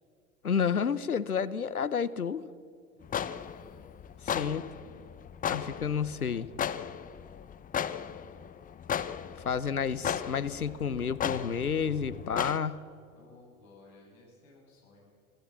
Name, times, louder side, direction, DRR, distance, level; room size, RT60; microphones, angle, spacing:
voice 1, 0.4-2.5 4.3-4.7 5.5-6.5 9.4-12.8, left 6 dB, 90° left, 16 dB, 0.9 m, -30 dB
voice 2, 2.9-3.4 4.2-5.1 13.1-15.1, left 3 dB, 65° left, -2 dB, 7.5 m, -57 dB
sound 1, 3.0-12.6, left 9 dB, 20° left, 0.8 m, -36 dB
25.5 x 16.0 x 7.3 m, 2.3 s
figure-of-eight pair, 85°, 43 cm